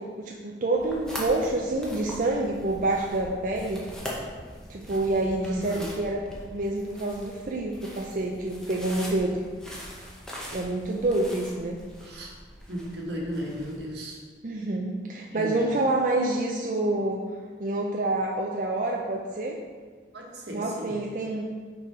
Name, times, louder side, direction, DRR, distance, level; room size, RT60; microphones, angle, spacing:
voice 1, 0.0-3.9 4.7-6.2 6.5-9.4 10.5-11.8 14.4-17.2 17.6-19.6 20.5-21.4, right 2 dB, 45° right, -1 dB, 0.4 m, -27 dB
sound 1, 0.7-13.9, equal, 5° left, 0.8 m, -42 dB
voice 2, 5.4-6.0 12.0-12.3 12.7-14.2 15.3-15.6 20.1-21.0, equal, 65° right, -2 dB, 1.2 m, -35 dB
5.5 x 4.1 x 4.7 m, 1.5 s
head